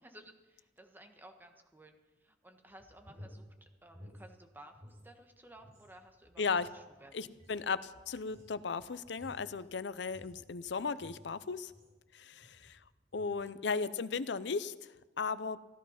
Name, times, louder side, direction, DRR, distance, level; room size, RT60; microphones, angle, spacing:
voice 1, 0.0-1.9 2.2-7.1 13.3-13.5, right 1 dB, 10° right, 4 dB, 1.3 m, -56 dB
sound 1, 2.7-5.1 5.4-12.1 12.4-12.8 13.1-13.4, equal, 40° right, 5.6 m, -56 dB
voice 2, 6.4-6.7 7.1-11.7 12.1-12.8 13.1-15.6, left 5 dB, 75° left, 15 dB, 0.6 m, -36 dB
15.0 x 11.5 x 5.8 m, 1.2 s
head